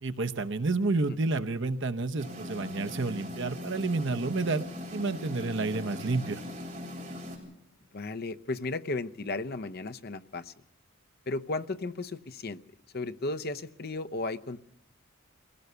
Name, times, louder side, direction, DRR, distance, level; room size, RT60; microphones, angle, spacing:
voice 1, 0.0-4.6 4.9-6.4, right 3 dB, 55° right, 8 dB, 0.9 m, -30 dB
sound 1, 2.2-7.4, left 1 dB, 35° right, 6.8 m, -40 dB
voice 2, 7.9-10.5 11.3-12.6 12.9-14.6, left 2 dB, 45° left, 11 dB, 0.7 m, -34 dB
23.0 x 17.0 x 6.8 m, 0.79 s
head